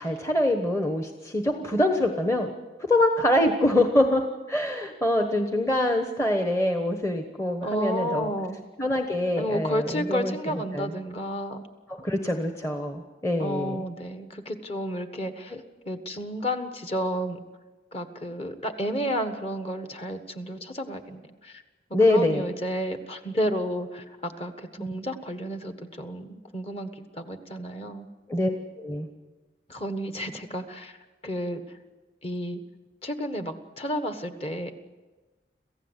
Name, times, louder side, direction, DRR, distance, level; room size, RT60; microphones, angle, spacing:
voice 1, 0.0-2.5 2.9-8.3 8.8-10.9 11.9-13.8 15.5-15.6 21.9-22.4 24.8-24.9 28.3-28.5 28.8-29.1, left 1 dB, 15° left, 5 dB, 1.1 m, -25 dB
voice 2, 7.6-8.6 9.4-11.7 13.4-15.6 15.9-17.4 17.9-21.6 22.1-28.1 29.7-31.0 31.2-31.6 32.2-32.6 33.0-34.7, equal, 30° left, 8 dB, 1.5 m, -31 dB
27.0 x 15.5 x 8.2 m, 1.3 s
head